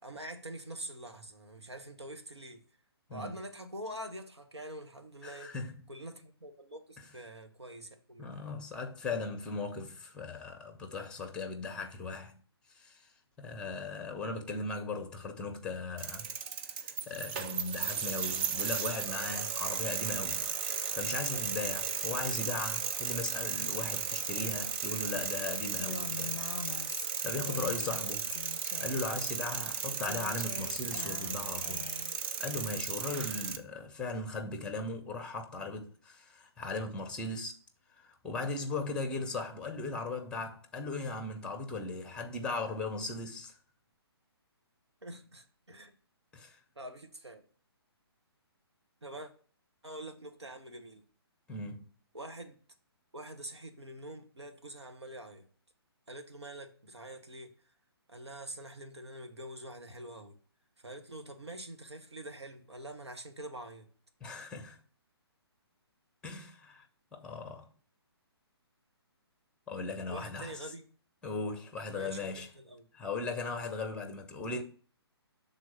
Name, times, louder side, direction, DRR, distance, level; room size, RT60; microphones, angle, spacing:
voice 1, 0.0-2.6 3.1-5.5 5.9-8.3 45.0-45.9 46.7-47.4 49.0-49.3 49.8-51.0 52.1-52.6 53.1-55.5 56.1-57.5 58.1-60.4 60.8-63.9 70.1-70.8 71.9-72.9, right 1 dB, 80° right, 1.3 m, -45 dB
voice 2, 5.2-5.7 8.2-12.3 12.7-13.0 13.4-16.3 16.6-20.5 20.9-26.4 26.7-26.9 27.2-28.3 28.8-31.9 32.4-37.6 38.0-43.5 46.3-46.6 51.5-51.9 64.2-64.8 66.2-66.8 67.1-67.7 69.7-70.5 71.2-72.5 72.9-74.6, left 3 dB, 5° left, 0.8 m, -38 dB
sound 1, 16.0-33.6, right 7 dB, 25° right, 0.5 m, -35 dB
Female speech woman speaking, 25.8-28.1 28.3-29.1 30.0-32.2, left 6 dB, 45° left, 0.5 m, -43 dB
6.2 x 3.9 x 5.5 m
figure-of-eight pair, 135°, 14 cm